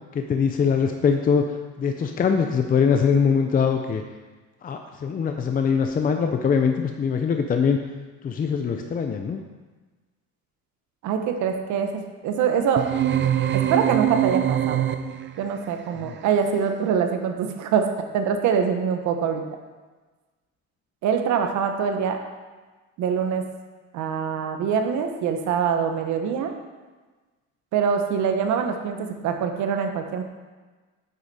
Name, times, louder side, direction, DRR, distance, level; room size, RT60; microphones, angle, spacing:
voice 1, 0.1-4.0 4.6-7.8 8.2-9.4 16.0-16.1, left 6 dB, 30° left, 5 dB, 0.6 m, -22 dB
voice 2, 11.0-12.9 13.5-14.9 15.4-19.4 21.0-22.2 23.0-23.4 23.9-26.5 27.7-30.2, right 7 dB, 75° right, 5 dB, 1.1 m, -24 dB
sound 1, 12.8-15.4, right 10 dB, 40° right, 0.5 m, -23 dB
8.3 x 8.1 x 4.2 m, 1.3 s
cardioid pair, 130°, 29 cm